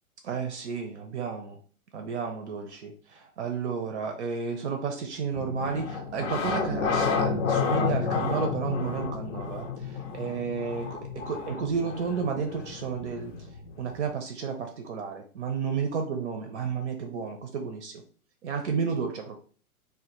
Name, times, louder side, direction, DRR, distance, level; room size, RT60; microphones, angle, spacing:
voice 1, 0.2-1.6 1.9-11.0 11.3-13.3 13.8-18.0 18.4-19.4, right 6 dB, 50° right, 4 dB, 0.5 m, -32 dB
sound 1, 5.3-14.1, left 5 dB, 55° left, 0.5 m, -31 dB
2.2 x 2.1 x 2.8 m, 0.44 s
figure-of-eight pair, 110°, 45 cm